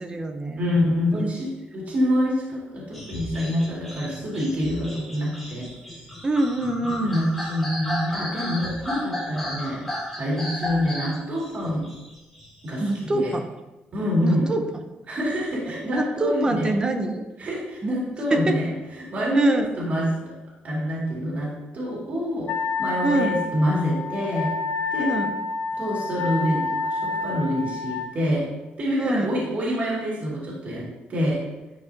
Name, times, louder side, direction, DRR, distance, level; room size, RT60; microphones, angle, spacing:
voice 1, 0.0-0.6 1.1-1.3 6.2-7.2 12.8-13.5 14.2-14.6 15.9-17.2 17.8-17.9 18.3-18.6 19.3-19.7 23.0-23.4 25.0-25.4 29.0-29.3, right 2 dB, 25° right, 6 dB, 0.7 m, -25 dB
voice 2, 0.6-5.7 7.0-9.8 10.2-11.9 12.6-13.3 13.9-14.5 15.1-16.7 17.4-20.2 20.6-24.5 24.9-25.1 25.8-28.5 28.8-31.4, equal, 45° right, -5 dB, 2.2 m, -26 dB
sound 1, 2.9-13.0, left 1 dB, ahead, 2.0 m, -34 dB
Wind instrument woodwind instrument, 22.5-28.1, left 4 dB, 75° left, 0.4 m, -28 dB
9.6 x 4.7 x 2.7 m, 1.1 s
cardioid pair, 125°, 4 cm